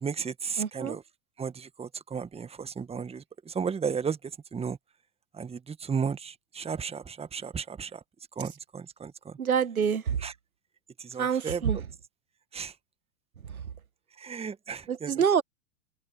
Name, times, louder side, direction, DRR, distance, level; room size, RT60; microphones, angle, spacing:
voice 1, 0.0-1.0 1.4-4.2 4.5-4.8 5.3-8.0 8.4-9.3 10.2-10.3 11.0-11.6 12.5-12.7 14.2-15.1, right 6 dB, 15° right, 1.7 m, -34 dB
voice 2, 0.6-1.0 9.4-10.2 11.2-11.8 14.9-15.4, right 7 dB, 80° right, 1.9 m, -26 dB
figure-of-eight pair, 95°, 42 cm